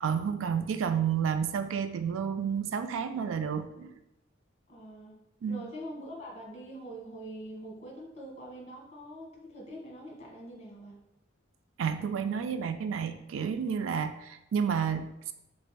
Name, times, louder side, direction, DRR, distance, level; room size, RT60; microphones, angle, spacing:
voice 1, 0.0-3.9 5.4-5.6 11.8-15.3, right 7 dB, 85° right, 9 dB, 0.3 m, -30 dB
voice 2, 4.7-5.2 5.5-11.0, equal, 35° left, -1 dB, 1.4 m, -44 dB
5.2 x 3.4 x 2.2 m, 0.87 s
head